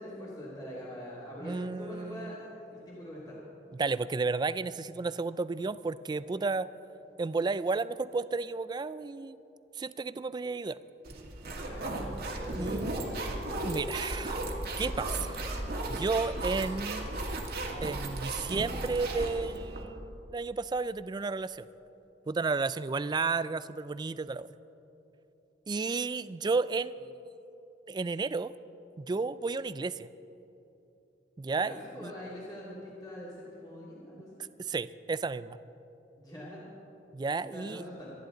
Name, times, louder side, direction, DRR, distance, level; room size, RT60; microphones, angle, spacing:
voice 1, 0.0-3.4 11.6-13.4 31.4-34.4 36.2-36.6 37.3-38.1, equal, 20° left, -7 dB, 2.6 m, -44 dB
voice 2, 1.4-2.4 3.7-6.7 7.2-9.4 9.8-10.8 12.5-12.9 13.6-14.4 14.8-15.4 15.9-17.1 17.8-21.7 22.3-24.5 25.7-27.2 27.9-28.5 29.0-30.1 31.4-32.1 34.6-35.6 37.1-37.9, right 4 dB, 25° right, 16 dB, 0.3 m, -32 dB
sound 1, 11.1-19.8, right 1 dB, 60° right, 1.9 m, -35 dB
25.0 x 10.5 x 3.9 m, 3.0 s
head